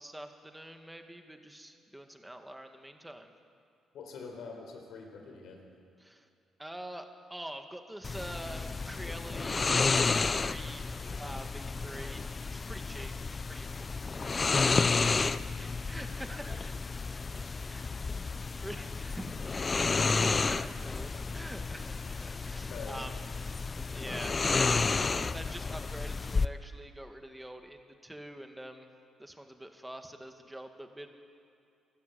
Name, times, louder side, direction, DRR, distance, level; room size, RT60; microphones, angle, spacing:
voice 1, 0.0-3.3 6.0-6.3 6.6-12.2 12.5-13.2 13.5-14.4 14.8-17.1 17.7-17.9 18.6-25.0 25.3-28.9 29.2-31.1, right 1 dB, 5° right, 5 dB, 2.0 m, -46 dB
voice 2, 3.9-5.6 22.7-23.0, left 5 dB, 75° left, 3 dB, 4.2 m, -45 dB
Small Dog Snoring, 8.0-26.5, left 4 dB, 30° left, 0.6 m, -31 dB
24.5 x 12.5 x 9.3 m, 2.5 s
cardioid pair, 90°, 0 cm